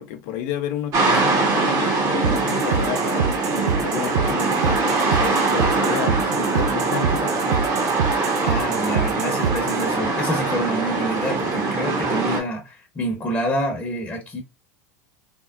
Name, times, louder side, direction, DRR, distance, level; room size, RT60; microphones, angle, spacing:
voice 1, 0.0-3.4 3.8-7.7, left 10 dB, 60° left, 0.6 m, -31 dB
sound 1, 0.9-12.4, right 3 dB, 45° right, 1.0 m, -22 dB
sound 2, 2.2-9.9, right 7 dB, 75° right, 0.4 m, -26 dB
voice 2, 8.4-14.4, equal, 20° left, 0.9 m, -27 dB
3.5 x 2.0 x 2.3 m
hypercardioid pair, 90°, 9 cm